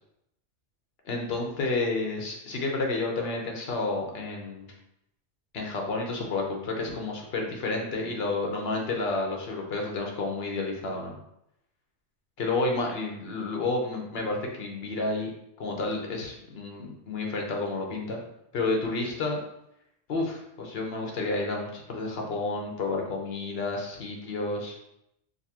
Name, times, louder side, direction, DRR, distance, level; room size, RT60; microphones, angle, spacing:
voice 1, 1.0-4.7 5.5-11.2 12.4-15.3 15.6-18.2 18.5-19.4 20.1-24.8, left 3 dB, 65° left, 1 dB, 1.0 m, -30 dB
3.8 x 2.6 x 2.8 m, 0.79 s
omnidirectional pair, 1.2 m